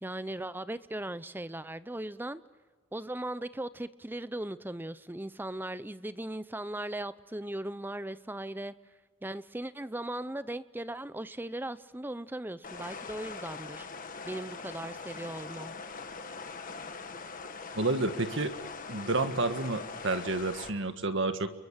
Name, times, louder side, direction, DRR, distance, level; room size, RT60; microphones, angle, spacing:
voice 1, 0.0-2.4 2.9-8.7 9.2-13.9 14.2-15.7, right 1 dB, 10° right, 0.7 m, -38 dB
sound 1, 12.6-20.7, left 4 dB, 40° left, 1.8 m, -42 dB
voice 2, 17.8-18.5 18.9-21.5, right 2 dB, 60° right, 1.8 m, -30 dB
30.0 x 22.5 x 7.5 m
head